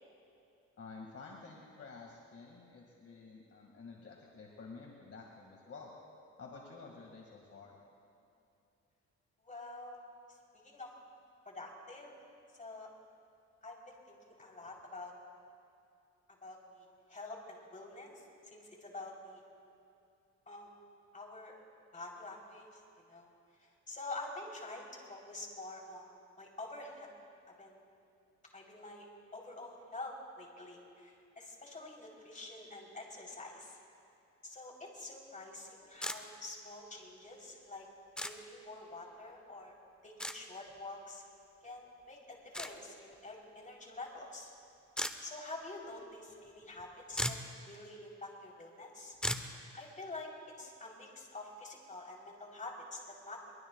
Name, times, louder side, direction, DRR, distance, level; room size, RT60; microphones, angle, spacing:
voice 1, 0.8-5.9 6.4-7.7, left 4 dB, 50° left, -1 dB, 2.2 m, -51 dB
voice 2, 9.4-10.0 10.3-10.4 10.6-10.9 11.5-12.1 12.5-12.9 13.6-15.1 16.4-19.4 20.5-20.7 21.1-21.6 21.9-23.3 23.6-26.1 26.4-27.1 27.5-27.8 28.5-29.1 29.3-33.8 34.4-37.9 38.2-39.7 40.0-41.2 41.6-44.5 45.2-47.4 47.6-49.1 49.7-50.3 50.6-53.5, left 2 dB, 25° left, -1 dB, 3.8 m, -47 dB
sound 1, 36.0-36.2 38.2-38.3 40.2-40.4 42.5-42.7 45.0-45.1 46.8-46.9 47.1-47.5 49.2-49.5, left 1 dB, 5° left, 0.9 m, -35 dB
23.0 x 22.5 x 2.4 m, 2.6 s
cardioid pair, 90°, 30 cm